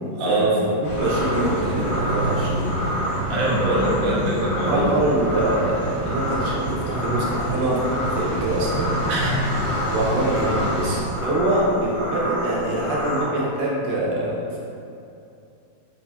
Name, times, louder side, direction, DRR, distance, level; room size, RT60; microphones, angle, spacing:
voice 1, 0.1-0.6 3.3-4.8 9.1-9.4, right 1 dB, 60° right, -6 dB, 1.2 m, -23 dB
sound 1, 0.8-11.0, right 1 dB, 45° left, 0.9 m, -28 dB
voice 2, 0.8-2.8 4.7-8.9 9.9-14.6, right 1 dB, 90° right, -5 dB, 1.5 m, -24 dB
sound 2, 1.0-13.2, equal, 70° left, 1.6 m, -29 dB
4.6 x 2.6 x 3.4 m, 2.7 s
omnidirectional pair, 1.9 m